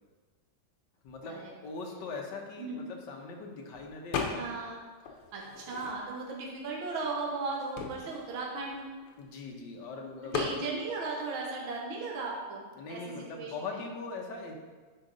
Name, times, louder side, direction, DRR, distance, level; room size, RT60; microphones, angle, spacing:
voice 1, 1.0-4.6 9.2-10.5 12.8-14.5, left 3 dB, 60° left, 1 dB, 1.5 m, -41 dB
sound 1, 4.1-4.7 5.0-6.3 6.9-7.0 7.2-9.5 10.3-10.6, left 5 dB, 80° left, 1.8 m, -36 dB
voice 2, 4.4-4.8 5.3-8.8 10.2-13.8, right 3 dB, 65° right, -2 dB, 1.9 m, -37 dB
8.7 x 5.2 x 3.9 m, 1.4 s
omnidirectional pair, 2.4 m